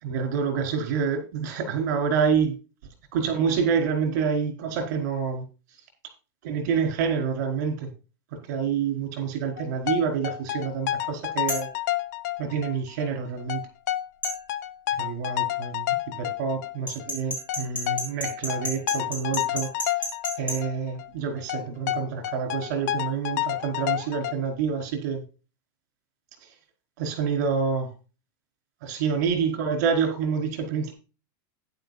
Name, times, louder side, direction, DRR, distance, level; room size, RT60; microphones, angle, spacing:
voice 1, 0.0-2.5 3.1-5.4 6.4-7.9 8.5-11.7 12.4-13.6 15.0-19.7 20.4-25.2 27.0-27.9 28.8-30.9, right 6 dB, 50° right, 5 dB, 4.7 m, -27 dB
sound 1, 9.6-12.8 13.0-13.1 13.5-17.1 17.5-20.7 21.0-21.1 21.5-24.3, left 13 dB, 50° left, 0.8 m, -29 dB
sound 2, 11.5-11.7 14.2-14.4 16.9-20.6, equal, 10° left, 4.4 m, -31 dB
11.5 x 10.5 x 2.7 m, 0.32 s
supercardioid pair, 175°, 12 cm